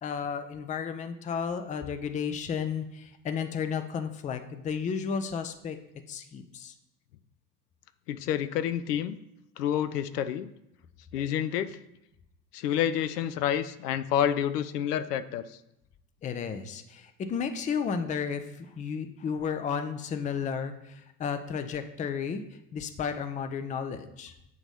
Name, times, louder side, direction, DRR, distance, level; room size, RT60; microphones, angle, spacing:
voice 1, 0.0-5.8 6.1-6.7 16.2-22.4 22.7-24.3, left 6 dB, 15° left, 9 dB, 0.5 m, -33 dB
voice 2, 8.1-9.2 9.6-10.5 11.1-11.8 12.5-15.4, left 10 dB, 70° left, 12 dB, 0.6 m, -28 dB
8.3 x 2.9 x 5.3 m, 0.85 s
figure-of-eight pair, 65°, 50 cm